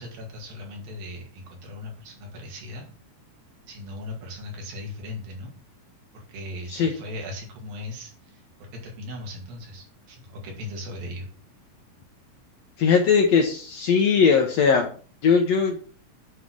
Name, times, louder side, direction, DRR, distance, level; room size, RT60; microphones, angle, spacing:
voice 1, 0.0-2.9 3.7-5.5 6.1-11.3, left 1 dB, 85° right, 0 dB, 4.0 m, -38 dB
voice 2, 12.8-14.9 15.2-15.8, left 6 dB, 70° left, 3 dB, 1.7 m, -19 dB
9.4 x 3.9 x 6.0 m, 0.41 s
omnidirectional pair, 4.0 m